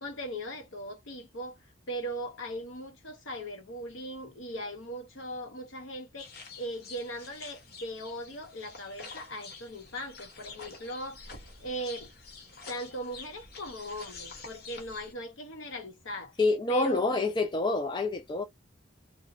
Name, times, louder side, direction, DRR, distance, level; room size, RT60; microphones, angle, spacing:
voice 1, 0.0-1.6 1.9-6.3 6.6-12.1 12.7-16.3 16.7-17.0, right 1 dB, 75° left, 0.9 m, -39 dB
sound 1, 6.2-15.1, left 4 dB, 50° left, 1.0 m, -48 dB
voice 2, 16.4-18.4, left 3 dB, 20° left, 0.3 m, -27 dB
2.8 x 2.1 x 2.5 m
head